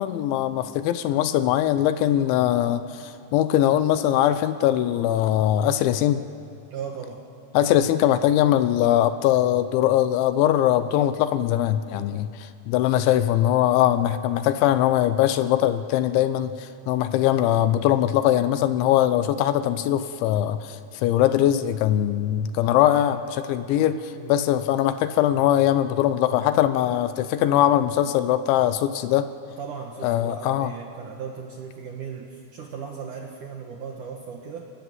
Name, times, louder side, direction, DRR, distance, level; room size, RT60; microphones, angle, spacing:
voice 1, 0.0-6.2 7.5-29.3 30.0-30.7, left 12 dB, 80° left, 11 dB, 3.0 m, -21 dB
voice 2, 6.7-7.2 12.9-13.1 14.3-14.4 16.8-17.0 23.0-23.2 23.6-24.4 29.5-34.6, right 6 dB, 65° right, 1 dB, 2.1 m, -37 dB
30.0 x 19.0 x 7.9 m, 2.5 s
omnidirectional pair, 5.5 m